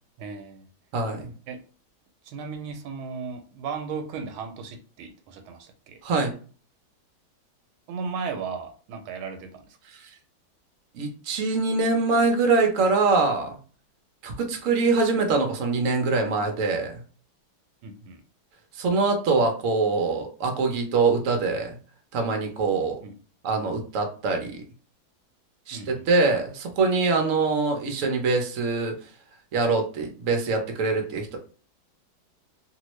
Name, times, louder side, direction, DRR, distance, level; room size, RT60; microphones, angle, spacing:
voice 1, 0.2-0.7 1.5-1.6 2.2-6.0 7.9-9.8 17.8-18.2 23.0-23.2 25.7-26.0, right 5 dB, 90° right, 1.4 m, -36 dB
voice 2, 0.9-1.3 6.0-6.3 9.9-10.1 10.9-13.6 14.2-17.0 18.7-21.8 22.1-23.0 23.4-24.6 25.7-28.9 29.5-31.4, right 3 dB, 60° right, 0.8 m, -24 dB
3.0 x 2.7 x 3.1 m
omnidirectional pair, 2.2 m